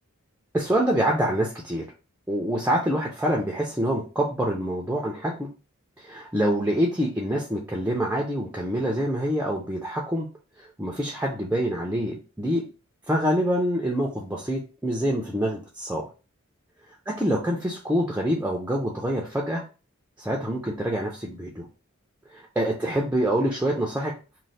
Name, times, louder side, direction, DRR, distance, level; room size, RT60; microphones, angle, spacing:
voice 1, 0.5-1.8 2.3-5.5 6.0-10.3 10.6-12.6 13.1-16.1 17.1-19.6 20.2-21.7 22.6-24.1, equal, 10° right, -1 dB, 0.4 m, -26 dB
3.1 x 2.0 x 4.0 m, 0.33 s
head